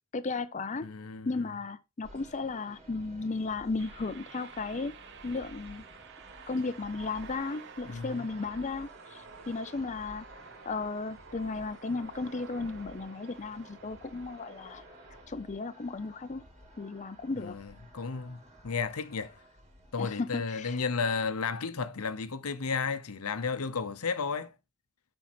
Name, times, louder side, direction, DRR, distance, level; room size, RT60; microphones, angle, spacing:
voice 1, 0.1-0.9 1.3-4.9 5.2-5.8 6.5-10.3 10.7-14.8 15.3-16.4 16.8-17.6 20.0-20.8, left 3 dB, 35° left, 0.5 m, -35 dB
voice 2, 0.8-1.5 7.8-8.3 17.4-19.4 19.9-24.5, left 5 dB, 90° left, 0.8 m, -33 dB
sound 1, 2.0-19.9, equal, 30° right, 2.6 m, -54 dB
sound 2, 3.8-15.2, right 5 dB, 55° right, 0.9 m, -51 dB
7.4 x 5.4 x 4.3 m
head